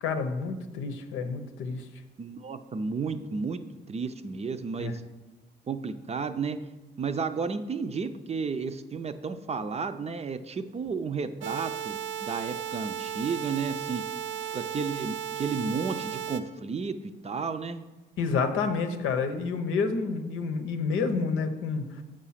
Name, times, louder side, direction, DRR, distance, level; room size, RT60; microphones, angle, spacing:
voice 1, 0.0-1.9 4.8-4.9 18.2-21.9, left 4 dB, 85° left, 7 dB, 0.8 m, -29 dB
voice 2, 2.2-3.6 3.9-5.0 5.7-6.6 7.0-14.0 14.5-17.9, right 5 dB, 30° right, 10 dB, 0.5 m, -32 dB
sound 1, 11.4-16.4, right 9 dB, 85° right, 0.6 m, -35 dB
7.4 x 5.0 x 5.7 m, 1.1 s
cardioid pair, 90°, 20 cm